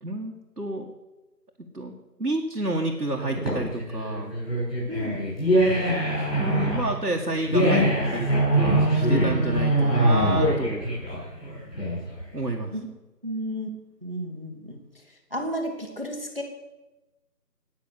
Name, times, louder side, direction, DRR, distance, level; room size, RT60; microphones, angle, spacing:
voice 1, 0.0-0.9 1.7-1.9 2.2-4.4 6.4-10.9 12.3-12.8, right 2 dB, 75° right, 0 dB, 2.1 m, -30 dB
sound 1, 3.2-12.2, right 1 dB, 35° left, 6.8 m, -23 dB
voice 2, 4.9-5.3 12.7-12.9 13.2-13.7 14.0-14.8 15.3-16.4, equal, 35° right, 3 dB, 1.6 m, -32 dB
19.0 x 6.5 x 8.1 m, 1.1 s
figure-of-eight pair, 180°, 49 cm